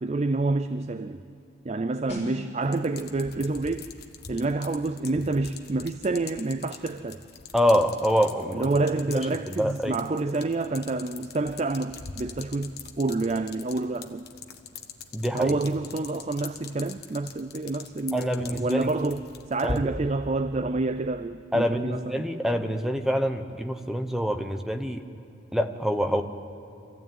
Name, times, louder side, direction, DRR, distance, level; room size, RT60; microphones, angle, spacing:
voice 1, 0.0-1.2 1.6-3.9 4.3-7.2 8.5-14.2 15.3-22.3, right 2 dB, 35° right, 0.4 m, -28 dB
sound 1, 2.1-12.6 12.9-13.1, equal, 35° left, 6.0 m, -49 dB
sound 2, 2.6-19.8, left 5 dB, 50° left, 1.2 m, -43 dB
voice 2, 7.5-8.7 9.5-10.0 15.1-15.5 18.1-18.9 19.6-19.9 21.5-25.0 25.5-26.2, equal, ahead, 0.9 m, -25 dB
24.5 x 15.0 x 9.1 m
head